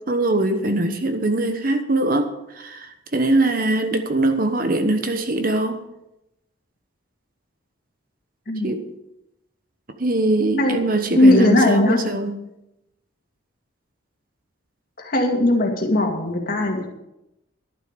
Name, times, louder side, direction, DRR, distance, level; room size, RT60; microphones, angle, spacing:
voice 1, 0.1-2.3 2.6-5.8 8.6-8.8 10.0-12.3, right 2 dB, 45° right, 7 dB, 1.1 m, -22 dB
voice 2, 11.1-12.0 15.0-16.9, left 1 dB, 45° left, 1 dB, 2.3 m, -18 dB
12.0 x 10.5 x 5.2 m, 0.88 s
head